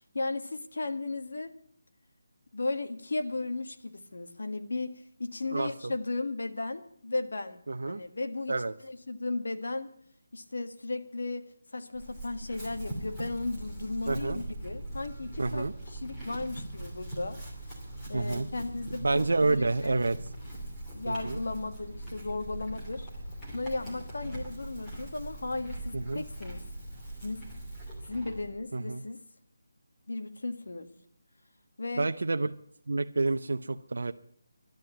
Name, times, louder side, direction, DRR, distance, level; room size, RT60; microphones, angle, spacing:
voice 1, 0.0-1.5 2.5-9.9 10.3-11.5 11.7-17.4 18.1-20.0 20.9-23.1 23.5-26.6 27.2-27.4 28.1-29.2 30.1-30.9 31.8-32.1, left 2 dB, 70° left, 7 dB, 1.7 m, -35 dB
voice 2, 5.5-5.9 7.7-8.0 8.5-8.7 14.1-14.4 15.4-15.7 18.1-18.5 19.0-20.2 21.1-21.4 25.9-26.2 28.7-29.0 32.0-32.5 32.9-34.1, right 3 dB, 70° right, 7 dB, 0.7 m, -29 dB
Chewing mastication / Livestock farm animals working animals, 11.9-28.5, right 1 dB, 10° left, 2.8 m, -41 dB
12.0 x 10.0 x 8.6 m, 0.64 s
figure-of-eight pair, 175°, 0 cm